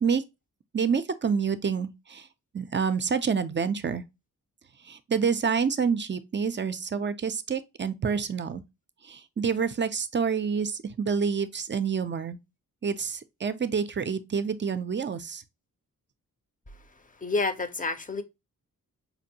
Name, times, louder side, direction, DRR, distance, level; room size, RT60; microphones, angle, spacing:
voice 1, 0.7-2.3 2.5-4.0 4.9-8.6 9.0-12.4 12.8-15.4, right 6 dB, 35° right, 0.4 m, -28 dB
voice 2, 17.2-18.2, left 3 dB, 25° left, 0.5 m, -28 dB
5.2 x 2.6 x 2.8 m
wide cardioid pair, 140°, 33 cm